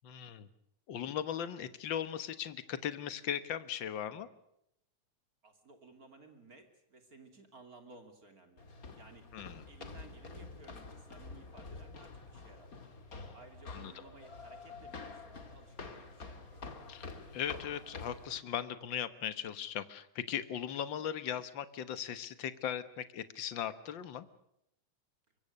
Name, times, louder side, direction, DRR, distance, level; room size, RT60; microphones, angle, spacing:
voice 1, 0.0-0.5 0.9-4.3 9.3-9.6 13.7-13.9 16.9-17.1 17.3-24.3, left 9 dB, 55° left, 13 dB, 1.4 m, -38 dB
voice 2, 5.4-8.7 8.9-9.2 9.7-12.8 13.3-16.7, right 3 dB, 30° right, 6 dB, 2.9 m, -57 dB
sound 1, 8.6-18.4, left 3 dB, 30° left, 2.3 m, -48 dB
24.5 x 23.0 x 6.5 m, 0.76 s
omnidirectional pair, 3.5 m